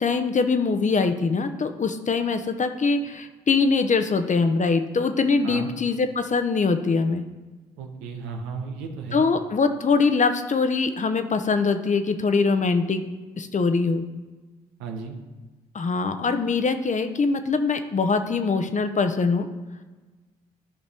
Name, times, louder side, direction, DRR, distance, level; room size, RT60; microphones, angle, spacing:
voice 1, 0.0-7.2 9.1-13.0 13.4-14.0 15.7-19.5, left 4 dB, 40° left, 8 dB, 0.9 m, -23 dB
voice 2, 7.8-9.3 14.8-15.2, right 5 dB, 80° right, 4 dB, 1.0 m, -34 dB
12.0 x 5.2 x 3.5 m, 1.3 s
hypercardioid pair, 40°, 20 cm